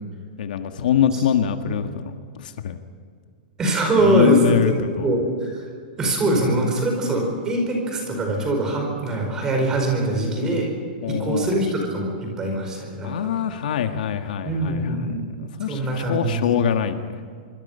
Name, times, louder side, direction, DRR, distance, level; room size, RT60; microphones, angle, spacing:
voice 1, 0.4-2.8 4.0-5.1 11.0-11.5 13.0-14.9 15.6-17.0, left 9 dB, 65° left, 7 dB, 1.6 m, -23 dB
voice 2, 3.6-4.7 5.0-5.6 6.0-10.7 11.0-13.1 14.4-15.3 15.7-16.4, right 1 dB, 15° right, 1 dB, 4.7 m, -23 dB
25.0 x 24.5 x 5.6 m, 2.1 s
supercardioid pair, 180°, 5 cm